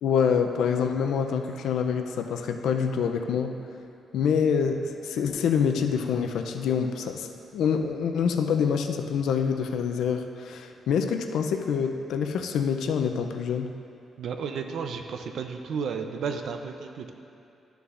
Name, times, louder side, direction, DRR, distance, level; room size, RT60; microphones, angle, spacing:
voice 1, 0.0-3.6 4.1-13.7, left 6 dB, 85° left, 5 dB, 0.5 m, -26 dB
voice 2, 14.2-17.1, right 6 dB, 70° right, 6 dB, 0.6 m, -33 dB
12.5 x 6.9 x 2.5 m, 2.6 s
cardioid pair, 145°, 0 cm